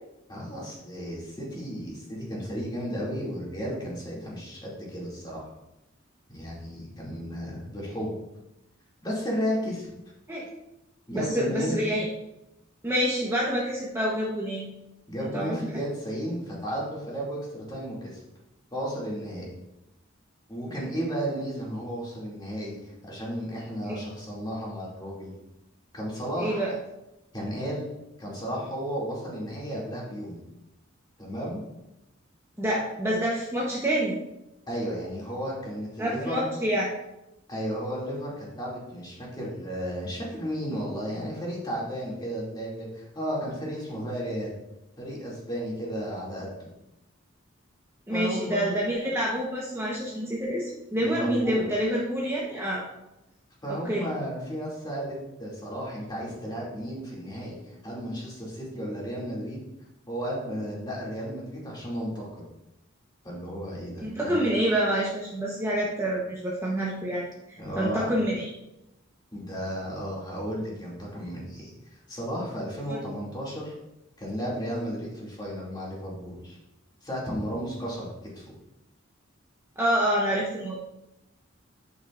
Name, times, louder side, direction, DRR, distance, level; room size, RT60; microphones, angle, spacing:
voice 1, 0.3-5.5 6.3-8.2 9.0-9.9 11.1-11.8 15.1-18.2 18.7-19.5 20.5-25.3 25.9-26.7 27.3-27.9 28.2-30.4 31.2-31.6 34.7-36.6 37.5-44.5 45.0-46.5 48.1-48.6 51.0-51.7 53.6-59.6 60.1-62.4 63.2-64.5 67.6-68.1 69.3-71.7 72.1-73.7 74.2-76.6 77.0-78.1 78.3-78.5, equal, 20° left, -5 dB, 2.4 m, -33 dB
voice 2, 11.1-12.1 12.8-14.7 15.2-15.6 23.9-24.0 26.4-26.7 32.6-34.1 36.0-36.9 48.1-52.8 53.7-54.1 64.0-67.3 67.8-68.5 72.9-73.0 79.8-80.8, equal, 15° right, -4 dB, 1.0 m, -27 dB
10.5 x 5.4 x 2.5 m, 0.90 s
head